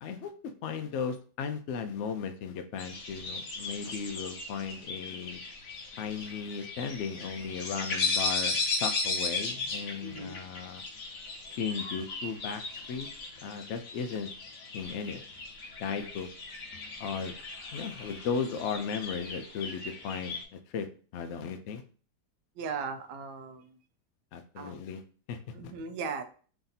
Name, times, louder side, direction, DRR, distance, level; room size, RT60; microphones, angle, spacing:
voice 1, 0.0-5.4 6.0-10.8 11.5-12.6 12.9-13.1 13.4-14.3 14.7-15.2 15.8-16.3 17.0-17.3 17.7-21.8 24.3-25.0 25.3-25.5, left 6 dB, 80° left, 7 dB, 0.6 m, -36 dB
sound 1, 2.8-20.4, left 3 dB, 60° left, 1.1 m, -36 dB
voice 2, 10.0-10.4 22.6-23.8 24.6-24.8 25.5-26.2, right 5 dB, 80° right, 7 dB, 1.2 m, -38 dB
3.4 x 2.7 x 3.9 m, 0.41 s
omnidirectional pair, 1.7 m